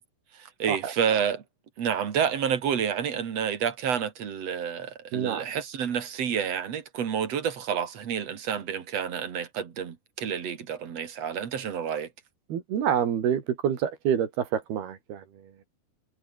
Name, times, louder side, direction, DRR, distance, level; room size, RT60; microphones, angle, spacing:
voice 1, 0.3-1.4 1.8-12.1, right 8 dB, 45° right, 2.6 m, -29 dB
voice 2, 5.1-5.4 12.5-15.2, right 9 dB, 70° right, 4.5 m, -27 dB
omnidirectional pair, 4.8 m